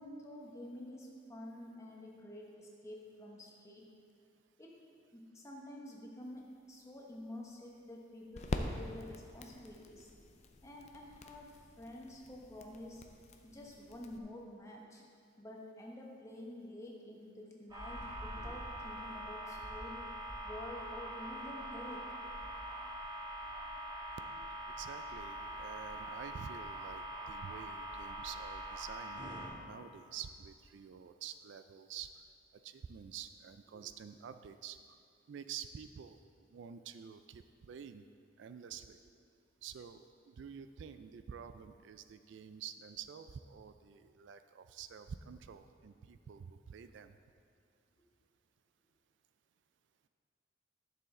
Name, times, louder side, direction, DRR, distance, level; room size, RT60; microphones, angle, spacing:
voice 1, 0.0-3.8 4.6-4.8 5.1-6.4 6.7-10.1 10.6-13.0 13.4-15.0 15.4-20.1 20.4-22.1 33.7-33.8, left 1 dB, 15° left, -2 dB, 1.0 m, -49 dB
sound 1, 6.3-14.2, left 2 dB, 35° left, 0.5 m, -45 dB
sound 2, 17.7-29.5, right 1 dB, 20° right, 1.7 m, -43 dB
voice 2, 24.7-29.2 29.7-32.1 32.6-34.8 35.3-36.2 36.5-38.0 38.4-39.0 39.6-47.2, right 8 dB, 65° right, 10 dB, 0.3 m, -48 dB
11.5 x 6.9 x 3.7 m, 2.4 s
head